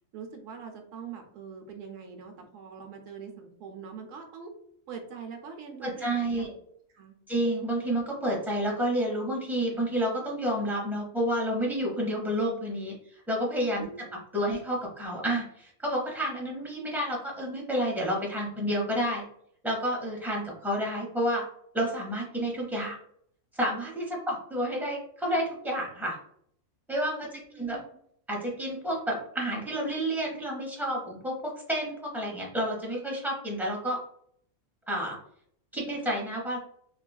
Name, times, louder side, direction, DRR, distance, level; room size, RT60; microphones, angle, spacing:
voice 1, 0.1-4.5 4.9-6.5 6.9-7.1 13.7-14.1 27.2-28.0, right 6 dB, 80° right, 4 dB, 0.9 m, -43 dB
voice 2, 5.8-6.5 7.3-14.1 14.3-19.2 19.6-21.4 21.7-23.0 23.5-26.2 26.9-27.8 28.3-34.0 34.9-35.2 35.7-36.6, equal, 5° right, -2 dB, 0.4 m, -30 dB
3.0 x 2.4 x 2.2 m, 0.65 s
omnidirectional pair, 1.3 m